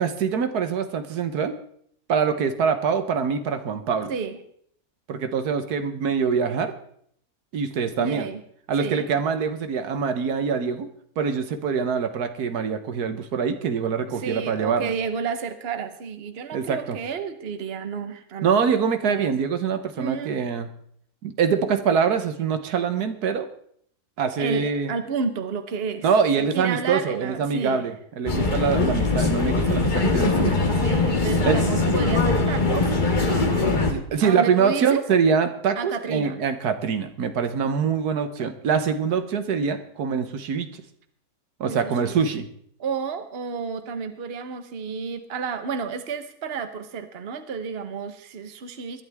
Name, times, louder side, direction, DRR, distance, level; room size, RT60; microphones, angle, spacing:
voice 1, 0.0-1.6 2.1-4.1 5.1-6.7 7.5-8.3 8.7-10.9 11.2-14.9 16.5-17.0 18.4-20.7 21.2-23.5 24.2-24.9 26.0-30.6 31.4-31.6 33.9-40.7 41.6-42.5, right 6 dB, 80° right, 9 dB, 1.6 m, -24 dB
voice 2, 8.0-8.4 8.8-9.1 14.2-18.7 19.0-19.3 19.9-20.3 24.4-26.1 26.4-27.9 30.6-33.9 34.2-35.0 35.8-36.4 38.4-38.5 41.7-42.2 42.8-49.0, right 5 dB, 45° right, 9 dB, 1.2 m, -31 dB
sound 1, 28.3-33.9, left 3 dB, 30° left, 1.6 m, -22 dB
21.0 x 11.5 x 3.5 m, 0.65 s
omnidirectional pair, 1.6 m